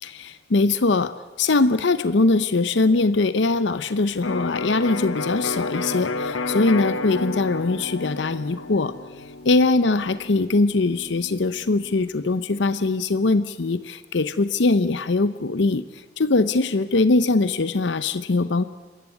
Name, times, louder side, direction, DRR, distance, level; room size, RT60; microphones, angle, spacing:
voice 1, 0.0-8.9 9.4-18.6, left 3 dB, 65° left, 13 dB, 0.7 m, -21 dB
Electric guitar, 4.2-12.0, left 3 dB, 90° left, 1.2 m, -31 dB
25.5 x 14.5 x 9.5 m, 1.4 s
head